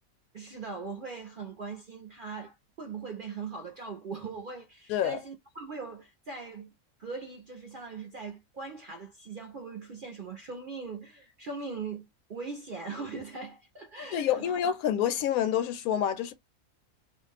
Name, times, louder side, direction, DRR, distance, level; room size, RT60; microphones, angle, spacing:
voice 1, 0.3-6.7 7.0-14.5, right 4 dB, 60° right, 0.5 m, -40 dB
voice 2, 14.1-16.3, left 9 dB, 80° left, 1.0 m, -27 dB
2.4 x 2.2 x 3.2 m
omnidirectional pair, 1.5 m